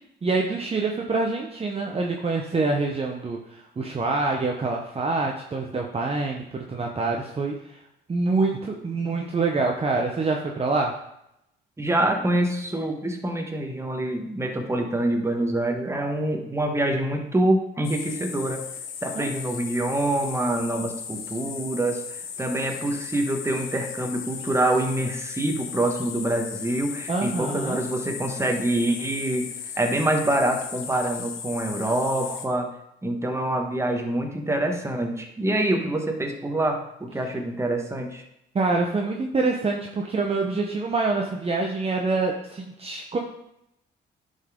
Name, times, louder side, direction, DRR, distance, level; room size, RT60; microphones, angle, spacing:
voice 1, 0.2-7.8 8.1-10.9 19.1-19.3 27.1-27.8 38.5-43.2, right 3 dB, 30° right, 1 dB, 0.9 m, -26 dB
voice 2, 11.8-18.6 19.0-29.5 29.8-32.7 33.0-38.2, right 1 dB, 15° right, 3 dB, 1.4 m, -26 dB
sound 1, 17.8-32.5, left 7 dB, 85° left, 1.0 m, -36 dB
10.5 x 5.5 x 3.8 m, 0.82 s
cardioid pair, 90°, 20 cm